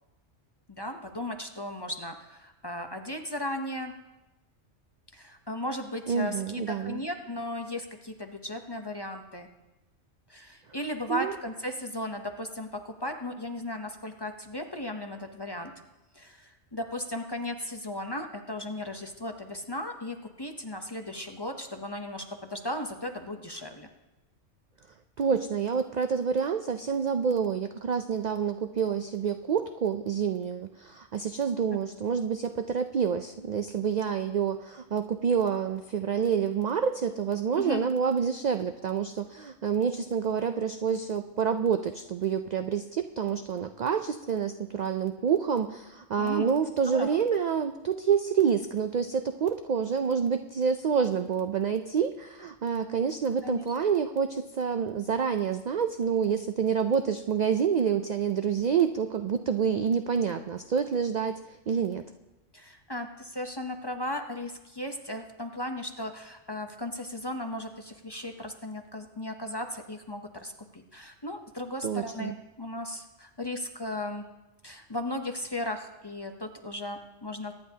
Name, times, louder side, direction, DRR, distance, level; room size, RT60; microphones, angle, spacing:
voice 1, 0.7-3.9 5.1-9.5 10.3-15.7 16.1-23.9 37.6-37.8 46.2-46.5 46.9-47.2 53.4-53.6 62.5-74.3 74.6-77.5, left 1 dB, 25° left, 5 dB, 0.6 m, -36 dB
voice 2, 6.1-7.0 11.1-11.3 25.2-61.4 61.7-62.0 71.8-72.3, right 7 dB, 65° right, 8 dB, 0.4 m, -28 dB
23.0 x 9.9 x 2.8 m, 1.0 s
omnidirectional pair, 1.2 m